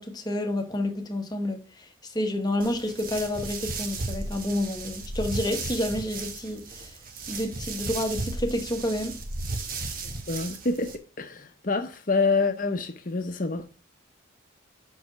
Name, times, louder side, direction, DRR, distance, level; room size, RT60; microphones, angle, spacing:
voice 1, 0.0-7.0 7.3-9.2, left 1 dB, 20° left, 1.0 m, -29 dB
sound 1, 2.6-10.9, right 3 dB, 45° right, 1.0 m, -35 dB
voice 2, 10.3-13.7, left 3 dB, 40° left, 0.8 m, -27 dB
5.8 x 5.2 x 5.9 m
head